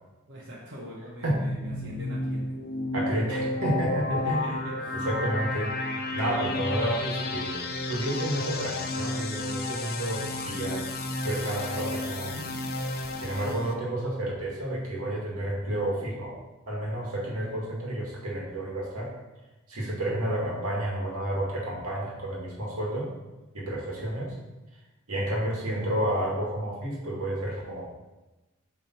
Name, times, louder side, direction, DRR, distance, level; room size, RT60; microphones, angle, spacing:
voice 1, 0.3-2.6 4.1-5.1, left 1 dB, 55° right, -6 dB, 1.2 m, -41 dB
sound 1, 1.2-13.7, left 2 dB, 45° left, 0.6 m, -32 dB
voice 2, 1.2-1.6 2.9-4.7 5.0-5.7 6.1-10.9 11.2-12.5 13.2-16.4 16.7-19.1 19.7-23.1 23.5-24.4 25.1-27.8, right 1 dB, 85° right, -3 dB, 1.9 m, -30 dB
7.6 x 3.6 x 4.4 m, 1.1 s
head